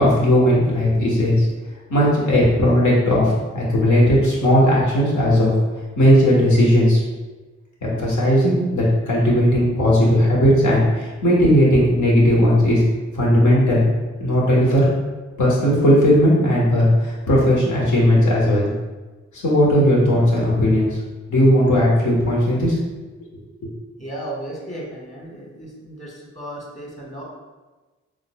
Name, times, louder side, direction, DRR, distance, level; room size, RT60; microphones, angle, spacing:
voice 1, 0.0-1.4 1.9-5.5 6.0-7.0 7.8-12.8 13.1-13.9 14.2-14.9 15.4-18.7 19.3-21.0 21.3-22.8, equal, 75° left, -5 dB, 1.2 m, -16 dB
voice 2, 24.0-27.2, right 1 dB, 25° left, -4 dB, 1.5 m, -34 dB
3.7 x 3.1 x 2.2 m, 1.2 s
cardioid pair, 40°, 30 cm